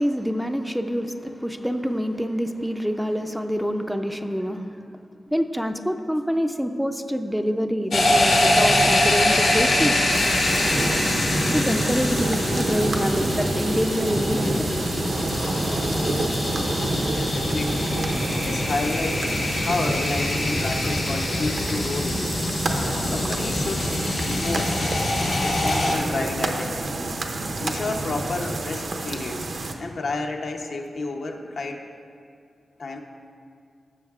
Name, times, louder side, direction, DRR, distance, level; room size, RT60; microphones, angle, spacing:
voice 1, 0.0-4.9 5.3-10.0 11.5-14.7 19.6-19.7, equal, ahead, 6 dB, 0.4 m, -26 dB
sound 1, 7.9-25.9, left 1 dB, 90° left, 1.7 m, -24 dB
sound 2, 10.1-29.7, right 2 dB, 65° right, 0.8 m, -29 dB
voice 2, 17.1-17.9 18.4-19.3 19.6-22.4 23.1-23.9 24.2-24.8 25.4-26.8 27.6-29.5 29.8-31.9 32.8-33.0, left 3 dB, 70° left, 3 dB, 0.7 m, -30 dB
15.5 x 7.1 x 2.4 m, 2.4 s
wide cardioid pair, 100°, 0 cm